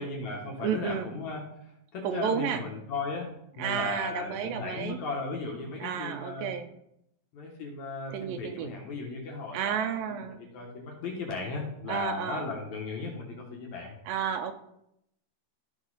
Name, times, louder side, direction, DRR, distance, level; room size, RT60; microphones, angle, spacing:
voice 1, 0.0-6.6 7.3-14.0, left 3 dB, 60° left, 0 dB, 2.1 m, -36 dB
voice 2, 0.6-1.1 2.0-2.6 3.6-5.0 5.8-6.7 8.1-8.7 9.5-10.4 11.9-12.5 14.1-14.5, right 8 dB, 80° right, 7 dB, 2.2 m, -31 dB
13.0 x 5.5 x 4.0 m, 0.79 s
omnidirectional pair, 4.4 m